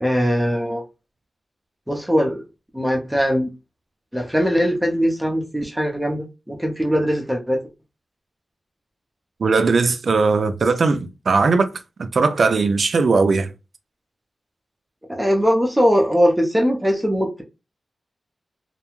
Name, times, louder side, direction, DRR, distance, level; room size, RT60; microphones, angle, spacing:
voice 1, 0.0-0.8 1.9-2.4 2.7-3.5 4.1-7.6 15.1-17.4, equal, 5° right, 0.5 m, -20 dB
voice 2, 9.4-11.7 12.0-13.5, right 4 dB, 65° right, 0.4 m, -18 dB
2.4 x 2.2 x 3.0 m
wide cardioid pair, 85°, 0 cm